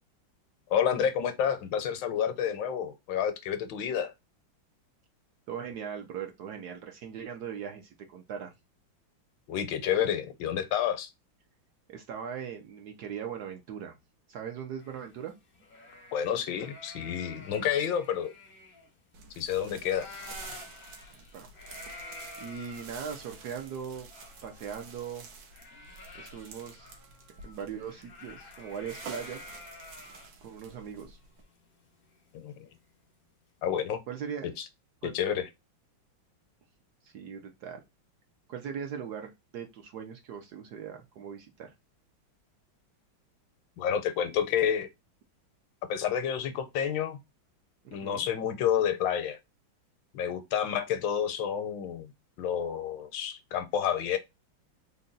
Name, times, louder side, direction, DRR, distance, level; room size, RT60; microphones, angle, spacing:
voice 1, 0.7-4.1 9.5-11.1 16.1-18.3 19.4-20.1 32.3-32.7 33.6-34.0 34.6-34.7 35.0-35.5 43.8-44.9 45.9-47.2 47.9-49.4 50.1-52.1 52.4-54.2, left 9 dB, 75° left, 1.3 m, -29 dB
voice 2, 5.5-8.5 11.9-14.0 14.3-15.3 21.1-21.5 22.4-24.1 24.4-25.3 26.1-26.9 27.4-29.5 30.4-31.2 34.1-34.5 35.0-35.1 37.0-37.8 38.5-41.7 48.0-48.3, right 7 dB, 65° right, 1.0 m, -39 dB
sound 1, 14.8-19.5 19.8-32.7, left 3 dB, 60° left, 0.5 m, -50 dB
sound 2, 19.1-31.4, right 4 dB, 85° right, 1.6 m, -49 dB
3.9 x 2.2 x 3.8 m
omnidirectional pair, 2.1 m